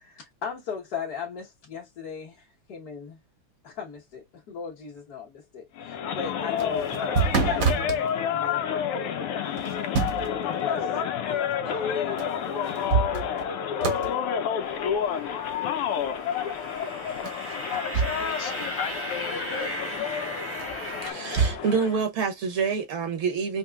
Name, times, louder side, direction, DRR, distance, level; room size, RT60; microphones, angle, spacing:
voice 1, 0.0-3.2 3.6-8.8 9.4-10.0 10.4-12.2, left 6 dB, 50° left, 1.5 m, -37 dB
sound 1, 5.8-22.0, left 8 dB, 85° left, 1.6 m, -30 dB
sound 2, 6.4-8.0 9.6-10.4 12.2-12.3 12.7-13.5 13.8-14.1 17.2-18.4 18.6-18.7 20.6-21.6, right 5 dB, 50° right, 1.1 m, -27 dB
sound 3, 14.6-21.1, right 1 dB, 10° right, 0.6 m, -37 dB
voice 2, 17.8-20.2, left 8 dB, 65° left, 1.2 m, -37 dB
voice 3, 21.0-23.6, right 5 dB, 70° right, 1.8 m, -27 dB
4.8 x 2.9 x 2.3 m
omnidirectional pair, 2.4 m